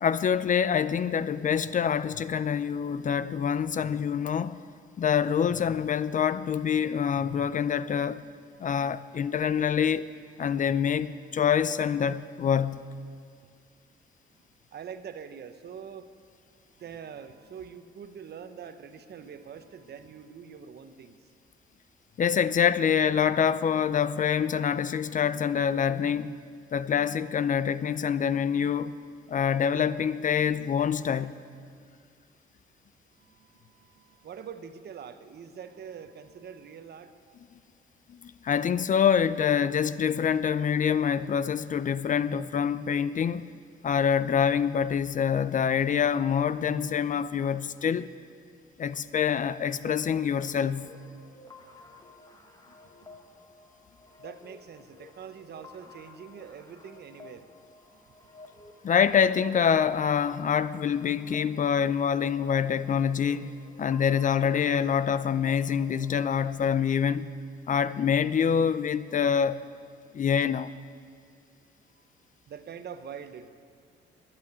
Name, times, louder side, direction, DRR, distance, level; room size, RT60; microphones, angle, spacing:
voice 1, 0.0-4.6 5.0-8.2 8.6-10.1 10.4-12.8 22.2-26.3 26.7-28.9 29.3-31.3 38.1-43.5 43.8-48.1 48.8-50.9 58.8-67.3 67.7-69.6 70.1-70.7, left 7 dB, 40° left, 0.4 m, -26 dB
voice 2, 8.5-8.8 9.2-9.5 14.7-16.1 16.8-21.3 33.2-37.1 39.1-39.3 41.5-41.6 42.3-42.4 49.8-50.5 50.8-50.9 52.2-53.2 54.2-57.5 57.8-58.9 61.3-61.4 65.9-66.4 66.8-67.2 69.3-69.5 71.9-72.0 72.5-73.5, right 7 dB, 55° right, 0.9 m, -45 dB
sound 1, 49.9-66.5, left 2 dB, 20° left, 1.5 m, -53 dB
11.5 x 8.8 x 9.5 m
cardioid pair, 90°, 20 cm